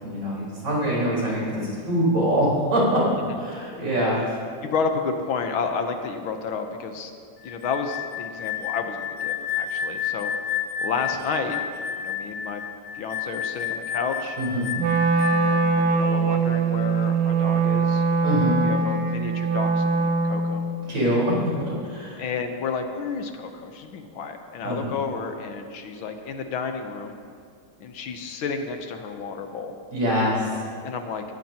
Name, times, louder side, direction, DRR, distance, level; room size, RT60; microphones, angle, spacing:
voice 1, 0.0-3.0 3.4-4.4 14.4-14.7 18.2-18.6 20.9-22.2 24.6-24.9 29.9-30.7, equal, 60° right, -6 dB, 5.2 m, -24 dB
voice 2, 4.6-7.1 7.4-10.3 10.8-11.6 12.0-12.6 12.9-14.4 15.2-18.0 18.4-20.6 22.2-27.1 27.8-29.7 30.8-31.2, left 5 dB, 75° left, 6 dB, 1.7 m, -31 dB
sound 1, 7.4-15.7, left 8 dB, 60° left, 1.7 m, -31 dB
Wind instrument woodwind instrument, 14.8-20.8, right 4 dB, 75° right, 1.6 m, -22 dB
19.5 x 15.0 x 2.9 m, 2.3 s
omnidirectional pair, 2.3 m